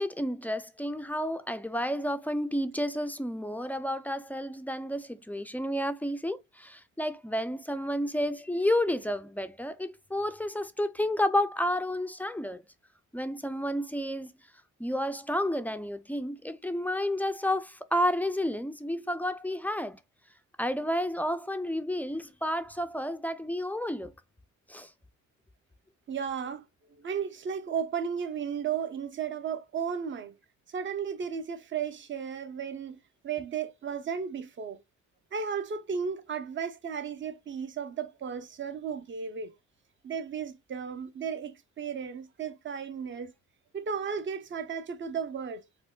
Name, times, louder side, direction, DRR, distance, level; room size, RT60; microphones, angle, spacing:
voice 1, 0.0-12.6 13.1-14.3 14.8-20.0 20.6-24.1 24.7-24.9, left 1 dB, 5° left, 0.3 m, -31 dB
voice 2, 26.1-26.6 27.0-30.3 30.7-33.0 33.2-34.8 35.3-39.5 40.0-43.3 43.7-45.6, right 7 dB, 40° right, 0.6 m, -34 dB
4.3 x 2.1 x 2.3 m
cardioid pair, 90°, 30 cm